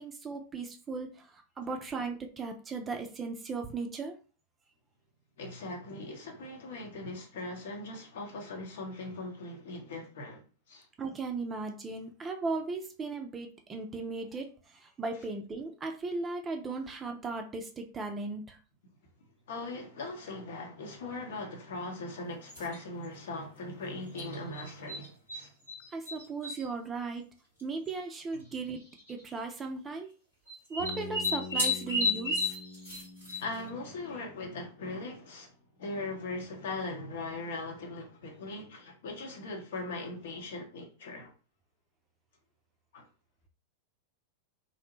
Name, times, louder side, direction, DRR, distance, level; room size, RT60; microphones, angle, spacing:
voice 1, 0.0-4.2 11.0-18.6 25.9-27.2 27.6-30.1 30.7-32.6, right 3 dB, 20° right, 0.4 m, -37 dB
voice 2, 5.4-10.4 10.7-10.9 19.5-25.5 33.4-41.3 42.9-43.1, left 2 dB, 55° left, 0.8 m, -40 dB
sound 1, 22.5-22.8 24.2-25.4 25.7-26.6 27.6-27.7 27.9-28.0 28.9-29.2 30.5-33.7, left 2 dB, 80° left, 1.4 m, -32 dB
Bass guitar, 30.8-34.9, left 2 dB, 90° right, 0.7 m, -45 dB
2.6 x 2.1 x 3.0 m
figure-of-eight pair, 90°, 0 cm